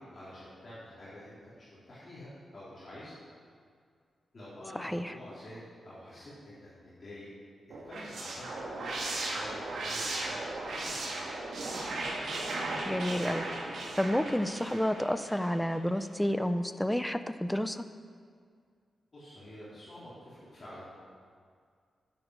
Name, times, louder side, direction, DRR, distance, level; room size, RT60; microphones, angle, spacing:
voice 1, 0.0-3.2 4.3-7.3 7.8-10.4 10.6-11.4 19.1-20.8, left 1 dB, 40° left, -11 dB, 4.0 m, -48 dB
voice 2, 4.8-5.1 12.8-13.5 14.0-17.8, equal, 5° left, 11 dB, 0.5 m, -30 dB
sound 1, 7.7-15.8, right 2 dB, 75° right, 2.4 m, -36 dB
11.0 x 9.8 x 6.5 m, 2.1 s
wide cardioid pair, 125°, 0 cm